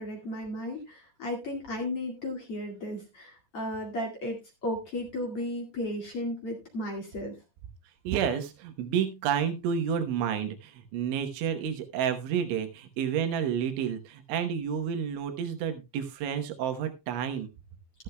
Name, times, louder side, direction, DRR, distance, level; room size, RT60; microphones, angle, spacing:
voice 1, 0.0-7.4, left 1 dB, 45° left, 0 dB, 2.2 m, -34 dB
voice 2, 8.1-17.5, right 8 dB, 85° right, 7 dB, 3.5 m, -30 dB
13.5 x 12.5 x 2.2 m, 0.25 s
omnidirectional pair, 5.3 m